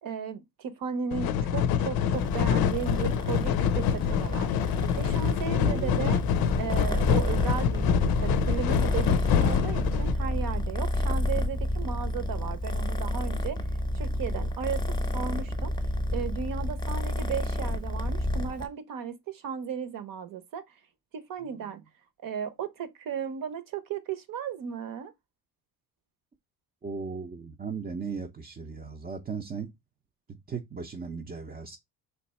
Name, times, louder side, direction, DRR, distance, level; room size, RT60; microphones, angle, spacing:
voice 1, 0.0-4.5 5.0-6.2 6.5-13.6 13.9-14.8 15.1-15.7 16.1-20.6 21.1-21.8 22.2-25.1, right 7 dB, 65° right, 0.9 m, -35 dB
sound 1, 1.1-10.1, left 8 dB, 75° left, 0.5 m, -26 dB
Purr, 2.1-18.7, left 1 dB, 10° left, 0.9 m, -30 dB
voice 2, 5.5-6.2 21.4-21.6 26.8-29.7 30.3-31.8, right 5 dB, 25° right, 0.6 m, -37 dB
3.4 x 2.9 x 4.2 m
cardioid pair, 105°, 37 cm